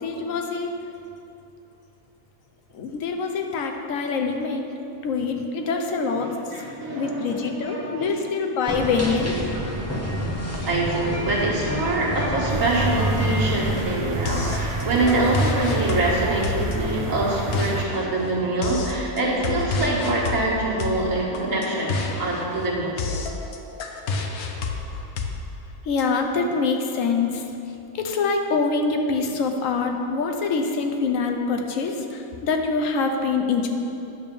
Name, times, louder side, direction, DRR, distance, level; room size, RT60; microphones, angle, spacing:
voice 1, 0.0-0.7 2.7-4.7 5.0-6.3 6.9-9.4 25.8-27.4 27.9-33.7, left 4 dB, 70° left, 4 dB, 1.1 m, -25 dB
voice 2, 6.1-8.1 9.5-9.7 10.6-23.2, right 2 dB, 70° right, -5 dB, 1.8 m, -25 dB
sound 1, 8.7-13.8, equal, 15° left, 0.6 m, -29 dB
sound 2, 12.5-17.8, right 2 dB, 50° right, 0.3 m, -28 dB
sound 3, 14.3-26.0, left 4 dB, 90° left, 1.2 m, -30 dB
9.6 x 3.5 x 6.8 m, 2.8 s
omnidirectional pair, 1.5 m